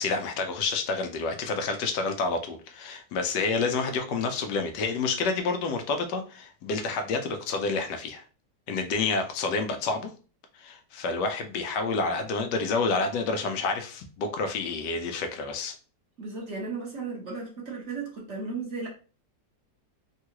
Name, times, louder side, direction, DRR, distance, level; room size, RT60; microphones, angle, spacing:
voice 1, 0.0-8.2 8.7-10.1 10.6-15.7, left 4 dB, 90° left, 1.3 m, -29 dB
voice 2, 16.2-18.9, right 4 dB, 50° right, 1.2 m, -35 dB
3.6 x 2.3 x 2.9 m
omnidirectional pair, 1.8 m